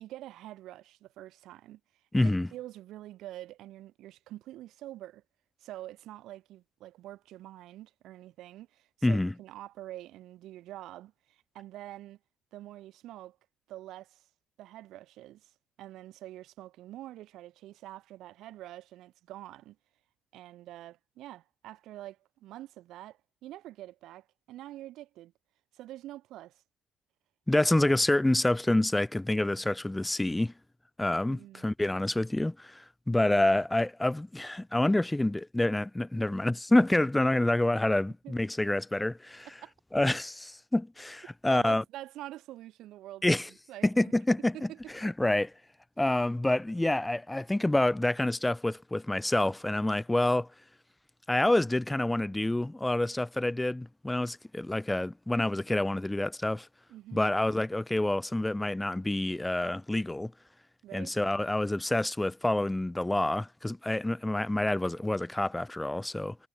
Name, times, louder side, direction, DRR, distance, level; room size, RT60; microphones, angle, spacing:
voice 1, 0.0-1.8 2.2-5.2 5.6-12.2 12.5-13.4 13.7-14.2 14.6-15.5 15.8-19.8 20.3-25.3 25.7-26.6 31.2-31.7 38.2-38.4 39.6-39.7 41.5-43.4 43.7-44.1 44.4-45.1 56.9-57.4 60.8-61.2, right 14 dB, 80° right, 5.7 m, -46 dB
voice 2, 2.1-2.5 9.0-9.3 27.5-30.5 31.0-39.5 39.9-41.8 43.2-43.5 43.8-44.7 44.9-45.5 46.0-50.5 51.3-56.7 57.1-60.3 60.9-66.4, left 1 dB, 10° left, 1.7 m, -27 dB
supercardioid pair, 75°, 0 cm